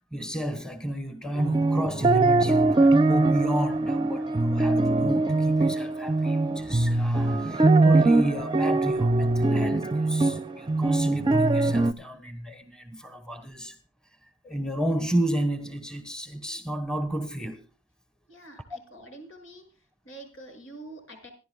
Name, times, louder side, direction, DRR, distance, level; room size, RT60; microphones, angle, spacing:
voice 1, 0.1-13.8 14.4-17.6, right 1 dB, 5° left, 1.4 m, -32 dB
sound 1, 1.4-11.9, right 2 dB, 25° right, 0.7 m, -22 dB
voice 2, 18.3-19.7 20.1-21.3, right 2 dB, 75° left, 6.9 m, -46 dB
26.5 x 11.5 x 2.3 m
head